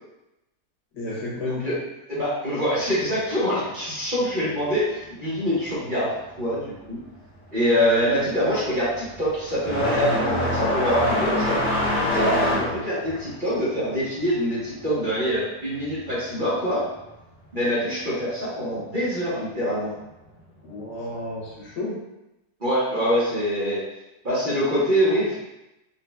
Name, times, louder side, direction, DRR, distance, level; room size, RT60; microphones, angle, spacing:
voice 1, 0.9-1.7 20.6-22.0, left 2 dB, 90° left, -6 dB, 1.7 m, -32 dB
voice 2, 1.4-1.8 2.1-7.0 7.5-11.6 12.0-16.9 17.5-19.9 22.6-23.8 24.2-25.4, equal, 35° right, -10 dB, 1.1 m, -24 dB
sound 1, 7.0-7.4 7.7-16.0 16.3-17.3 18.3-18.4 19.2-19.3 21.1-21.2, left 1 dB, 10° left, 0.6 m, -26 dB
4.1 x 2.5 x 2.2 m, 0.93 s
omnidirectional pair, 1.7 m